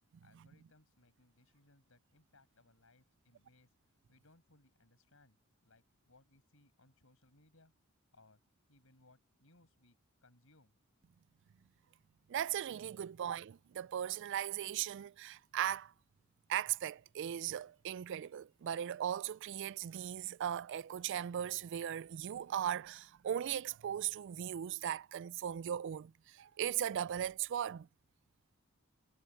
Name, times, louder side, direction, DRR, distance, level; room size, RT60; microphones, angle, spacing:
voice 1, 0.2-3.7 4.1-5.4 5.6-7.7 8.1-8.4 8.7-9.9 10.2-10.8, left 2 dB, 70° left, 5.9 m, -67 dB
voice 2, 12.3-15.9 16.5-27.9, right 10 dB, 60° right, 0.3 m, -38 dB
head